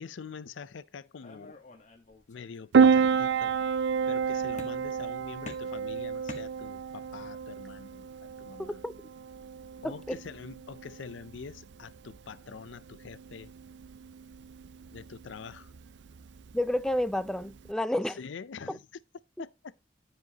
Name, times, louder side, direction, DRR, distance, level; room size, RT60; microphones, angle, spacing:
voice 1, 0.0-1.6 2.3-3.6 4.1-8.8 9.8-13.5 14.9-15.7 18.2-18.9 19.4-19.9, left 5 dB, 85° left, 0.5 m, -45 dB
sound 1, 1.2-2.6 2.9-3.6 4.6-5.1 5.5-7.1, left 2 dB, 40° left, 1.3 m, -48 dB
Piano, 2.7-17.7, right 6 dB, 70° right, 0.4 m, -30 dB
voice 2, 9.8-10.2 16.5-18.2, left 1 dB, 5° left, 0.3 m, -30 dB
12.0 x 5.1 x 2.9 m
head